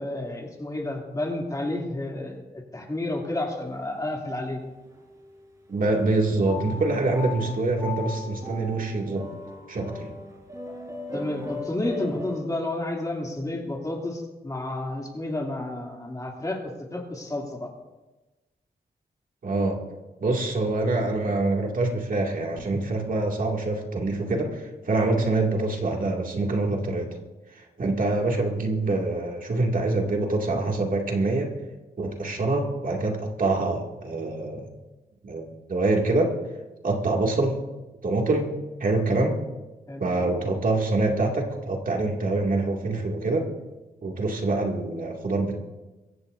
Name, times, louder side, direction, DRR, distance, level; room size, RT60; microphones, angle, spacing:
voice 1, 0.0-4.6 11.1-17.7 25.1-25.2 39.9-40.0, left 1 dB, 20° left, -1 dB, 2.8 m, -31 dB
sound 1, 3.4-4.1 4.8-5.4 6.4-12.4, left 3 dB, 20° right, 5.0 m, -38 dB
voice 2, 5.7-9.3 9.7-10.1 19.4-19.8 20.2-27.1 27.5-31.5 32.0-34.7 35.2-36.3 36.8-37.6 38.0-38.5 38.8-39.4 40.0-43.5 44.0-45.6, right 2 dB, 55° right, 0 dB, 2.4 m, -25 dB
23.5 x 15.5 x 2.7 m, 1.1 s
wide cardioid pair, 110°, 17 cm